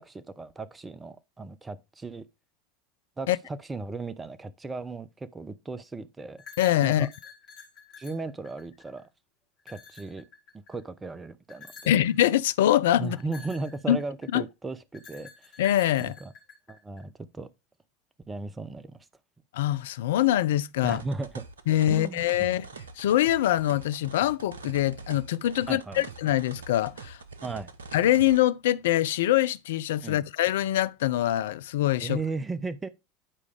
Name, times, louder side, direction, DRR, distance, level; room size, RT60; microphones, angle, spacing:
voice 1, 0.0-2.3 3.2-6.4 6.8-7.1 8.0-9.1 9.6-10.3 10.5-11.9 13.0-15.6 16.0-16.3 16.7-17.5 18.3-19.1 20.8-21.4 21.9-22.6 25.7-26.0 27.4-27.7 30.0-30.2 32.0-32.9, right 3 dB, 15° right, 0.8 m, -36 dB
sound 1, 6.4-9.0 9.6-10.8 11.5-12.1 13.2-14.4 14.9-17.0, left 5 dB, 45° left, 2.8 m, -49 dB
voice 2, 6.6-7.1 11.9-13.2 13.9-14.0 14.3-14.4 15.6-16.1 19.5-21.0 21.7-22.6 23.0-27.2 27.9-32.2, left 13 dB, 65° left, 0.4 m, -24 dB
sound 2, 20.9-28.4, right 4 dB, 80° right, 0.7 m, -44 dB
9.9 x 4.8 x 3.3 m
figure-of-eight pair, 80°, 0 cm